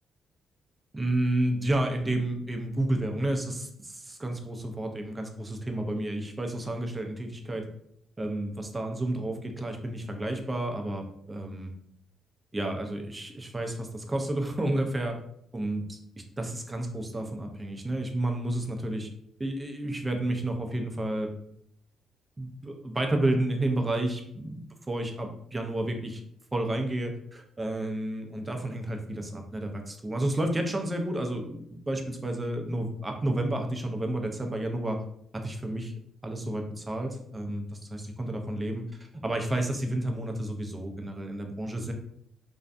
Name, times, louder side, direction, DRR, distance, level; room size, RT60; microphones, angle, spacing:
voice 1, 0.9-7.7 8.2-11.7 12.5-15.2 15.5-16.0 16.4-19.1 19.4-21.3 22.4-26.2 26.5-35.0 35.3-35.9 36.2-37.6 37.9-38.8 39.2-41.9, right 1 dB, 20° right, 3 dB, 0.4 m, -31 dB
2.5 x 2.1 x 2.4 m, 0.71 s
cardioid pair, 90°, 0 cm